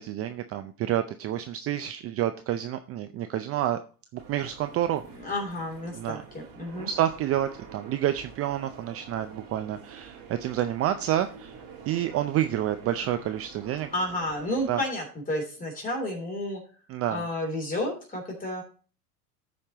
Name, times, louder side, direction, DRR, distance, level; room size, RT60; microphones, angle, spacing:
voice 1, 0.0-3.8 4.1-5.0 5.9-6.2 6.8-11.5 11.9-13.9 14.7-14.8 16.9-17.2, right 12 dB, 30° right, 10 dB, 0.5 m, -29 dB
sound 1, 4.2-14.7, right 6 dB, 50° right, 3.2 m, -47 dB
voice 2, 5.1-6.9 13.9-16.6 17.1-18.6, left 1 dB, 20° left, 0 dB, 3.3 m, -31 dB
14.0 x 5.3 x 2.9 m, 0.39 s
hypercardioid pair, 100°, 46 cm